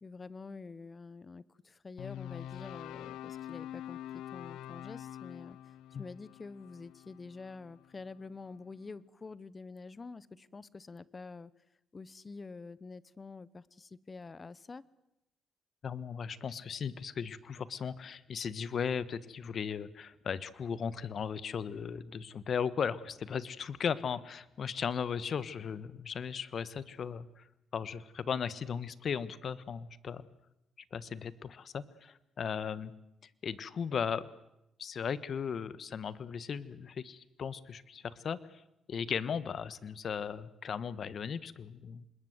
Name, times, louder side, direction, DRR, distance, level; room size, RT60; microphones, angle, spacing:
voice 1, 0.0-11.5 11.9-14.8, left 4 dB, 30° left, 20 dB, 1.0 m, -47 dB
sound 1, 2.0-8.2, left 11 dB, 85° left, 0.8 m, -45 dB
voice 2, 15.8-27.4 27.7-30.3 30.9-32.9 33.4-34.3 34.8-38.6 38.9-42.1, left 7 dB, 55° left, 17 dB, 1.3 m, -37 dB
26.5 x 21.0 x 8.1 m, 0.87 s
cardioid pair, 90°, 0 cm